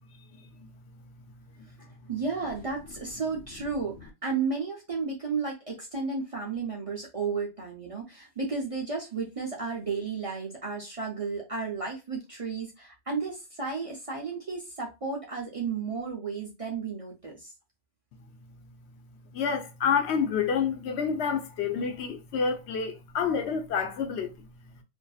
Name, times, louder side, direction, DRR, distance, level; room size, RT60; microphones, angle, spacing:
voice 1, 0.4-0.7 2.0-2.1 19.3-24.5, left 6 dB, 70° left, 0.8 m, -28 dB
voice 2, 1.8-17.5, right 4 dB, 40° right, 0.5 m, -33 dB
2.5 x 2.4 x 2.3 m
omnidirectional pair, 1.2 m